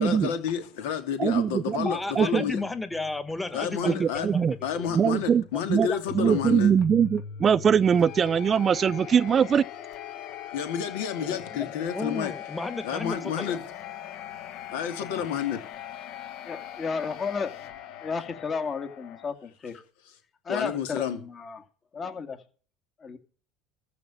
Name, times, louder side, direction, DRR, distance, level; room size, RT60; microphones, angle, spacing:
voice 1, 0.0-2.6 3.5-4.3 4.6-6.7 10.5-12.3 12.8-13.6 14.7-15.6 20.5-21.2, left 8 dB, 80° left, 2.5 m, -30 dB
sound 1, 1.2-19.3, left 8 dB, 60° left, 1.3 m, -42 dB
voice 2, 1.2-1.9 2.2-2.4 3.8-4.5 4.9-5.4 5.7-5.9 6.1-9.6, right 7 dB, 35° right, 0.5 m, -22 dB
voice 3, 1.8-5.0 5.3-6.0 11.2-13.6 15.0-15.2, left 2 dB, 10° left, 1.5 m, -34 dB
voice 4, 16.4-17.7 18.0-19.8 20.4-21.6 21.9-22.4 23.0-23.2, left 5 dB, 35° left, 2.2 m, -33 dB
14.0 x 5.1 x 8.8 m
hypercardioid pair, 85°, 0 cm